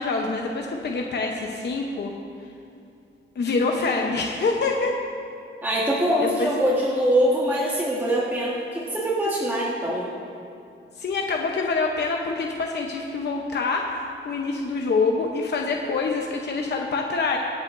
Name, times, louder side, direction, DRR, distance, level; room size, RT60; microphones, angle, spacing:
voice 1, 0.0-2.1 3.4-5.0 6.2-6.5 11.0-17.4, left 3 dB, 55° left, 0 dB, 0.8 m, -26 dB
voice 2, 5.6-10.1, equal, 10° right, -6 dB, 1.4 m, -23 dB
25.0 x 8.4 x 2.6 m, 2.5 s
wide cardioid pair, 150°, 21 cm